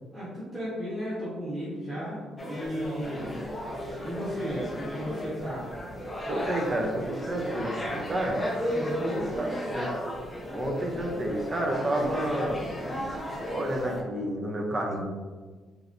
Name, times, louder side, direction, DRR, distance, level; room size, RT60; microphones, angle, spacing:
voice 1, 0.1-3.3 4.0-5.7 8.7-9.3 11.9-12.1 12.6-13.0, equal, 10° right, -11 dB, 1.3 m, -34 dB
sound 1, 2.4-14.0, equal, 20° left, 0.7 m, -34 dB
voice 2, 6.3-8.4 9.4-9.9 10.5-12.6 13.5-15.0, right 1 dB, 30° right, 1 dB, 0.6 m, -30 dB
4.0 x 2.0 x 2.6 m, 1.4 s
cardioid pair, 90°, 0 cm